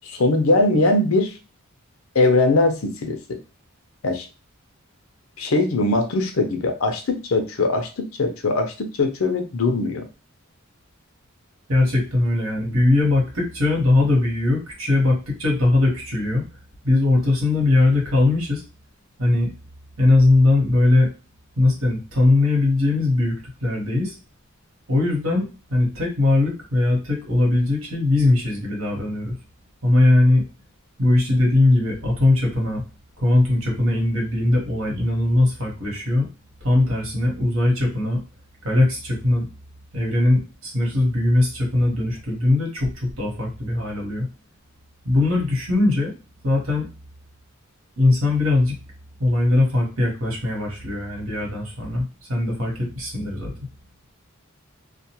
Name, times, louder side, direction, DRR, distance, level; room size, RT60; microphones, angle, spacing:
voice 1, 0.0-1.3 2.1-3.4 4.0-4.3 5.4-10.0, left 2 dB, 80° left, 4 dB, 0.6 m, -21 dB
voice 2, 11.7-16.4 16.8-18.6 19.2-19.5 20.0-21.1 21.6-23.3 23.6-24.2 24.9-29.3 29.8-30.4 31.0-32.8 33.2-36.3 36.6-38.2 38.6-39.5 39.9-44.3 45.0-46.1 46.4-46.9 48.0-48.8 49.2-53.5, left 2 dB, 75° right, -1 dB, 1.2 m, -20 dB
2.4 x 2.2 x 2.8 m, 0.31 s
head